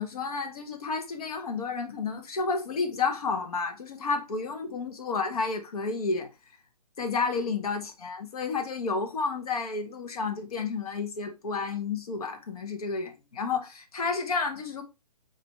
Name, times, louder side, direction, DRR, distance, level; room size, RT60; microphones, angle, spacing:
voice 1, 0.0-6.3 7.0-14.8, left 4 dB, 65° left, 1.0 m, -31 dB
4.1 x 2.5 x 3.1 m
hypercardioid pair, 170°, 21 cm